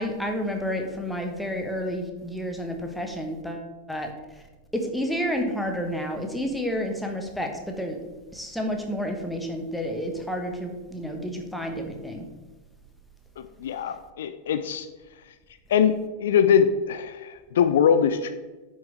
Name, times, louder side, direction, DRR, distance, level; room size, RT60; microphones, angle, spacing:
voice 1, 0.0-4.1 4.7-8.0 8.3-12.3, equal, ahead, 3 dB, 1.4 m, -30 dB
voice 2, 13.4-14.9 15.7-15.9 16.2-18.3, left 7 dB, 60° left, 9 dB, 0.5 m, -22 dB
10.5 x 6.4 x 3.5 m, 1.2 s
figure-of-eight pair, 90°, 0 cm